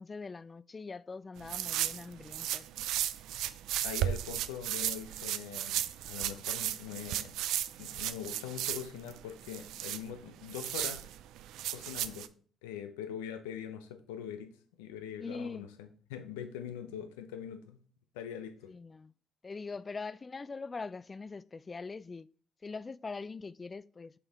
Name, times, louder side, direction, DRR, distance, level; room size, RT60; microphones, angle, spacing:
voice 1, 0.0-2.7 15.2-15.7 18.7-19.1 19.4-22.3 22.6-24.1, left 4 dB, 35° left, 0.3 m, -42 dB
sound 1, 1.4-12.3, right 12 dB, 70° right, 0.3 m, -35 dB
voice 2, 3.8-7.4 7.8-11.0 11.7-12.3 12.6-14.5 14.8-17.8 18.1-18.7, left 9 dB, 85° left, 0.7 m, -42 dB
6.7 x 4.3 x 3.5 m
hypercardioid pair, 55°, 0 cm